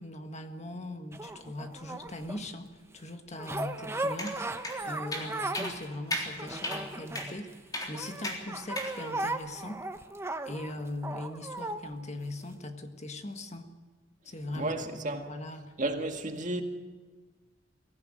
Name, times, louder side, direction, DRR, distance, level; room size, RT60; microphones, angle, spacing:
voice 1, 0.0-7.5 7.9-9.8 10.4-13.7 14.2-15.7, left 1 dB, 40° left, 1.6 m, -40 dB
sound 1, 1.1-2.5 3.4-5.8 6.1-7.6 7.9-11.8 12.5-12.6, right 2 dB, 15° right, 1.0 m, -37 dB
sound 2, 4.2-4.3 4.6-4.8 5.1-5.3 5.5-5.7 6.1-6.3 6.6-6.8 7.1-7.3 7.7-7.9 8.2-8.4 8.8-8.9, left 1 dB, 20° left, 3.7 m, -34 dB
voice 2, 14.6-15.2 15.8-16.6, right 2 dB, 45° right, 1.9 m, -32 dB
23.5 x 15.5 x 9.1 m
head